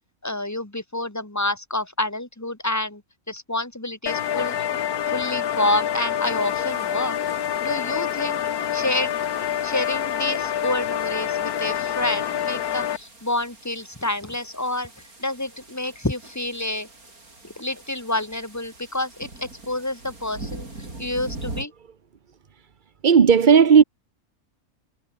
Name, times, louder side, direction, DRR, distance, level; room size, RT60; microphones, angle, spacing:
voice 1, 0.2-3.0 3.3-4.7 5.1-7.2 7.6-9.2 9.6-14.9 15.2-16.9 17.4-20.7 21.0-21.7, left 1 dB, 10° left, 2.3 m, -28 dB
sound 1, 4.1-13.0, left 10 dB, 90° left, 1.5 m, -26 dB
sound 2, 6.2-21.6, right 2 dB, 75° right, 6.0 m, -43 dB
voice 2, 23.0-23.8, right 6 dB, 40° right, 0.9 m, -13 dB
omnidirectional pair, 1.5 m